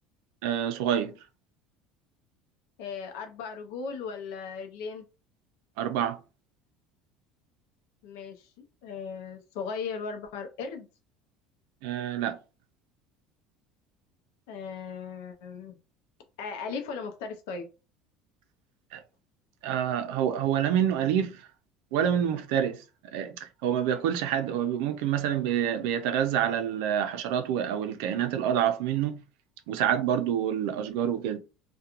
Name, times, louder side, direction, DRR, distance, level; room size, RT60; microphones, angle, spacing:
voice 1, 0.4-1.1 5.8-6.2 11.8-12.4 18.9-19.0 19.6-21.4 21.9-22.8 23.1-29.2 29.7-31.4, right 9 dB, 85° right, 0.4 m, -27 dB
voice 2, 2.8-5.1 8.0-10.9 14.5-15.8 16.4-17.7, left 5 dB, 90° left, 0.5 m, -37 dB
2.9 x 2.2 x 2.4 m
cardioid pair, 160°, 0 cm